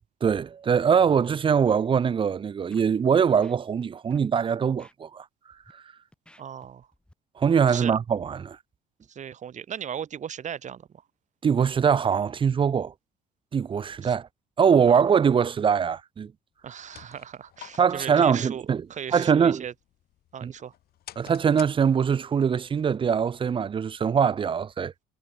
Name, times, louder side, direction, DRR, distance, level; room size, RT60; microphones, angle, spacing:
voice 1, 0.2-5.2 7.4-8.6 11.4-12.9 13.5-14.3 14.6-16.3 17.8-18.8 19.1-19.6 20.4-20.5 21.2-24.9, right 7 dB, 30° right, 0.6 m, -22 dB
Scratching (performance technique), 2.7-2.9 3.2-3.8 4.1-4.3 4.8-4.9 5.5-5.7 6.1-7.1 7.5-7.8, left 1 dB, 5° left, 7.2 m, -55 dB
voice 2, 6.4-6.9 7.7-7.9 9.1-10.9 14.0-14.1 14.9-15.0 16.6-19.7 20.3-20.7, right 8 dB, 45° right, 2.7 m, -37 dB
sound 1, 16.6-22.3, left 13 dB, 65° left, 1.8 m, -51 dB
cardioid pair, 110°, 17 cm